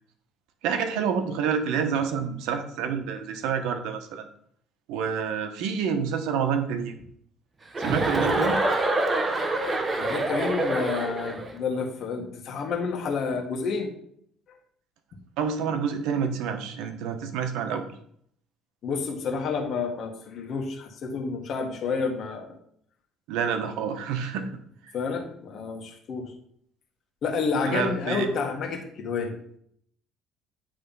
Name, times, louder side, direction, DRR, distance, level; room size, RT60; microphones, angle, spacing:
voice 1, 0.6-4.3 4.9-6.9 7.8-8.6 15.4-17.9 23.3-24.5 24.8-24.9 27.6-28.3, right 7 dB, 85° right, 7 dB, 1.0 m, -28 dB
Chuckle chortle, 7.7-11.5, right 2 dB, 20° right, 0.9 m, -26 dB
voice 2, 10.0-13.9 18.8-22.5 24.9-26.3 27.2-29.3, left 4 dB, 50° left, 2 dB, 1.5 m, -29 dB
9.0 x 3.4 x 5.4 m, 0.67 s
cardioid pair, 135°, 0 cm